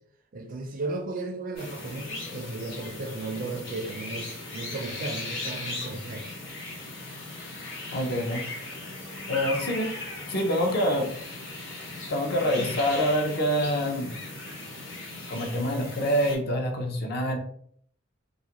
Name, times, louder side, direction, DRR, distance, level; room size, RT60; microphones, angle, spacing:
voice 1, 0.3-6.3 12.4-12.8, right 2 dB, 45° right, 0.4 m, -35 dB
sound 1, 1.6-16.4, left 2 dB, 65° left, 0.9 m, -38 dB
voice 2, 7.9-8.4 9.3-9.9 10.3-11.1 12.1-14.2 15.3-17.4, equal, 50° left, 0.5 m, -26 dB
2.4 x 2.1 x 2.9 m
head